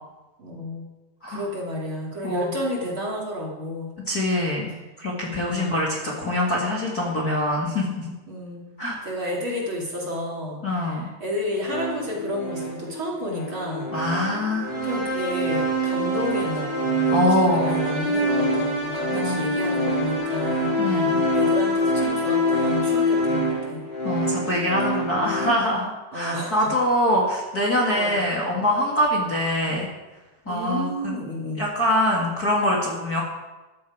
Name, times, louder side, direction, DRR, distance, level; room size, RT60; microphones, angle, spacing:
voice 1, 0.4-0.8 1.3-3.9 5.4-5.8 8.3-8.7 9.0-13.9 14.7-23.8 26.1-26.7 28.0-28.2 30.4-31.7, equal, 40° right, -2 dB, 3.2 m, -31 dB
voice 2, 4.1-4.7 5.0-8.1 8.8-9.0 10.6-11.1 13.9-14.7 17.1-17.8 19.2-19.5 20.8-21.2 24.0-29.9 30.5-31.2 31.6-33.2, left 1 dB, 30° left, -4 dB, 2.1 m, -24 dB
sound 1, 11.6-25.5, equal, 85° left, 8.0 m, -25 dB
14.0 x 12.5 x 4.9 m, 1.1 s
omnidirectional pair, 3.8 m